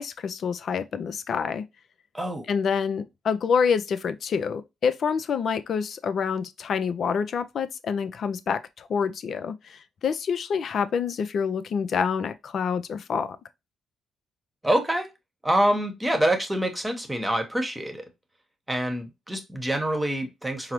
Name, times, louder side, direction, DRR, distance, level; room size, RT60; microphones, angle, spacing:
voice 1, 0.0-1.6 2.5-13.3, left 6 dB, 60° left, 0.4 m, -27 dB
voice 2, 2.1-2.5 14.6-15.1 15.4-18.0 18.7-20.7, right 1 dB, 15° right, 1.0 m, -26 dB
4.7 x 2.0 x 2.9 m
hypercardioid pair, 50°, 0 cm